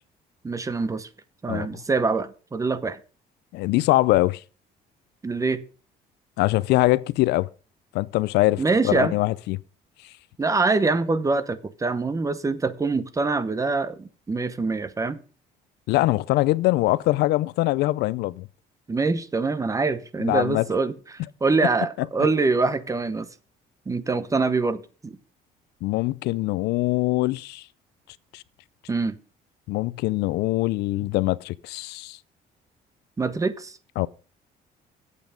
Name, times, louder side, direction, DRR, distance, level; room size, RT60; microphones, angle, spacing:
voice 1, 0.4-1.1 1.4-3.0 5.2-5.6 8.6-9.1 10.4-15.2 18.9-23.3 23.9-25.2 28.9-29.2 33.2-33.7, right 3 dB, 20° right, 0.8 m, -24 dB
voice 2, 3.5-4.4 6.4-7.5 7.9-9.6 15.9-18.5 20.2-20.6 25.8-27.6 28.3-28.4 29.7-32.2 34.0-34.1, left 18 dB, 80° left, 0.4 m, -23 dB
9.3 x 8.2 x 5.0 m
cardioid pair, 110°, 17 cm